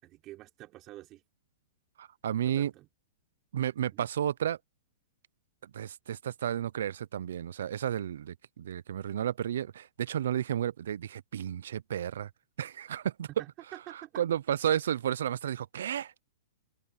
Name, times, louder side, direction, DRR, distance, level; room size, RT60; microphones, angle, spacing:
voice 1, 0.0-1.2 2.4-2.9 3.9-4.1 13.3-14.2, right 16 dB, 30° right, 3.8 m, -48 dB
voice 2, 2.0-2.7 3.5-4.6 5.6-12.3 12.6-13.3 14.2-16.1, right 10 dB, 75° right, 0.6 m, -32 dB
open air
hypercardioid pair, 140°, 0 cm